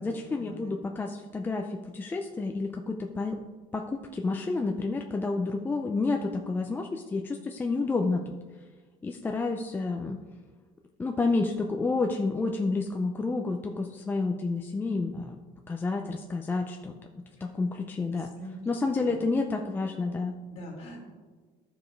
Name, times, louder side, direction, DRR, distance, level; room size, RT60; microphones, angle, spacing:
voice 1, 0.0-3.4 3.7-8.3 9.0-10.2 11.0-15.4 15.7-18.3 18.7-20.3, left 3 dB, 15° left, 3 dB, 0.5 m, -30 dB
voice 2, 18.1-18.6 19.1-19.2 20.5-21.0, equal, 45° left, 0 dB, 2.7 m, -43 dB
13.0 x 4.9 x 4.6 m, 1.4 s
cardioid pair, 155°, 14 cm